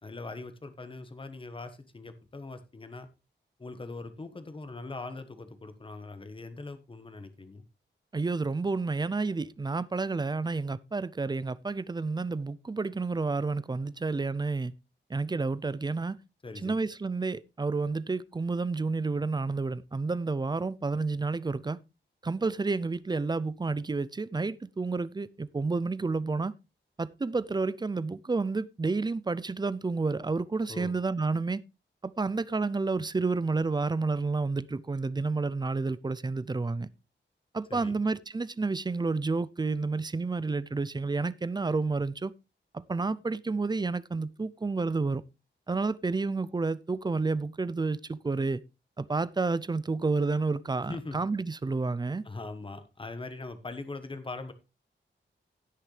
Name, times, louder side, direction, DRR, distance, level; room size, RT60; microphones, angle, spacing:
voice 1, 0.0-3.1 3.6-7.6 16.4-16.8 30.7-31.0 37.7-38.0 50.9-51.2 52.2-54.5, left 3 dB, 25° left, 1.2 m, -41 dB
voice 2, 8.1-14.7 15.1-16.2 16.6-21.8 22.2-26.5 27.0-31.6 32.0-36.9 37.5-42.3 42.7-45.2 45.7-48.6 49.0-52.2, right 3 dB, 20° right, 0.4 m, -30 dB
16.5 x 6.4 x 3.3 m
wide cardioid pair, 155°, 20 cm